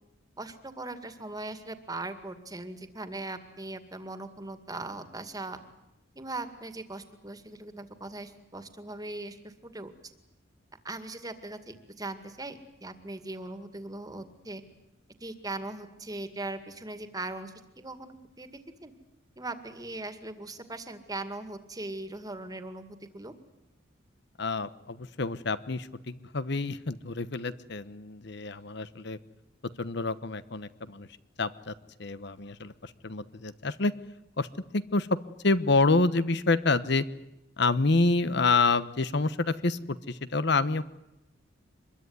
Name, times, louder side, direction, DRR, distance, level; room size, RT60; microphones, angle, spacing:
voice 1, 0.4-5.6 6.2-10.1 10.8-14.6 15.2-18.5 18.8-18.9 19.4-23.3, right 2 dB, 20° right, 10 dB, 2.2 m, -39 dB
voice 2, 24.4-29.2 29.8-31.1 31.4-31.7 32.0-33.9 34.4-34.5 34.7-35.1 35.4-37.0 37.6-40.8, left 3 dB, 60° left, 15 dB, 1.1 m, -27 dB
25.5 x 22.0 x 9.6 m, 0.89 s
head